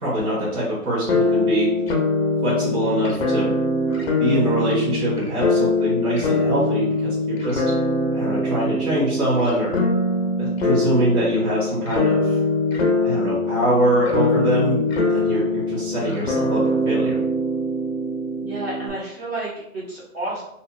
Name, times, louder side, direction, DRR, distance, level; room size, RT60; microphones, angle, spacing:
voice 1, 0.0-1.7 2.4-3.5 4.2-7.6 8.1-9.8 10.4-12.4 13.0-14.8 15.1-17.2, right 1 dB, 80° right, -7 dB, 1.5 m, -23 dB
sound 1, 1.1-18.9, left 2 dB, 45° left, 0.4 m, -22 dB
voice 2, 18.4-20.4, right 2 dB, 40° right, -7 dB, 1.0 m, -31 dB
2.7 x 2.6 x 2.3 m, 0.77 s
hypercardioid pair, 155°, 45 cm